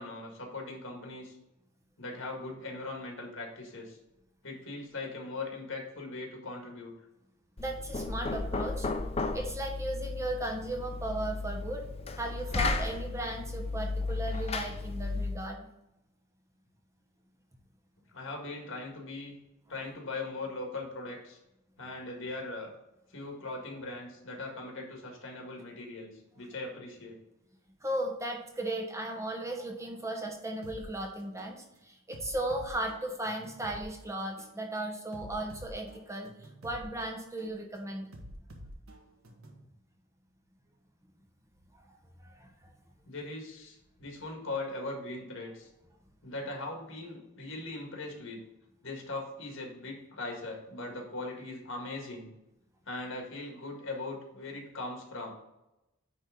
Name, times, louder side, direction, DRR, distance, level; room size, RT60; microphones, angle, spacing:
voice 1, 0.0-1.4 2.0-4.0 4.4-6.9 18.1-19.4 19.7-21.4 21.8-22.7 23.1-27.2 43.0-45.7 46.2-48.4 48.8-52.3 52.8-55.3, left 2 dB, 65° left, 1 dB, 1.8 m, -40 dB
Knock, 7.6-15.5, left 3 dB, 30° left, 0.5 m, -34 dB
voice 2, 7.6-8.9 9.3-11.8 12.1-15.7 27.8-38.1 41.9-42.0 42.2-42.7, right 1 dB, 15° right, 2 dB, 0.9 m, -36 dB
sound 1, 30.6-30.8 31.4-31.6 32.1-33.9 34.4-34.6 35.1-36.9 37.4-37.6 38.1-39.6, equal, 85° right, 1.3 m, -48 dB
9.6 x 3.5 x 3.8 m, 0.92 s
head